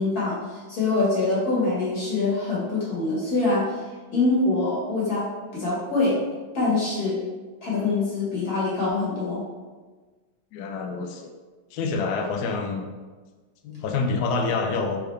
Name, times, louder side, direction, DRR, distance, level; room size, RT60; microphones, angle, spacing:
voice 1, 0.0-3.7 4.1-5.3 5.6-6.2 6.5-7.1 7.6-9.4, left 3 dB, 50° left, -7 dB, 1.8 m, -24 dB
voice 2, 10.5-11.3 11.7-12.9 13.6-15.0, left 4 dB, 80° left, 3 dB, 0.9 m, -27 dB
4.4 x 3.6 x 3.2 m, 1.3 s
omnidirectional pair, 2.2 m